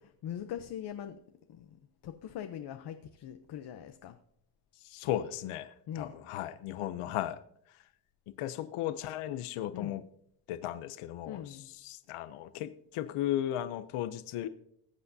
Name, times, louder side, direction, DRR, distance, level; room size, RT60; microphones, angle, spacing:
voice 1, 0.2-1.2 1.5-4.2 5.9-6.1 9.7-10.0 11.3-11.7, left 10 dB, 55° left, 7 dB, 0.8 m, -42 dB
voice 2, 4.8-7.4 7.7-7.8 8.3-10.0 10.5-14.5, left 12 dB, 85° left, 11 dB, 0.8 m, -36 dB
20.0 x 8.3 x 2.7 m, 0.73 s
cardioid pair, 145°, 50 cm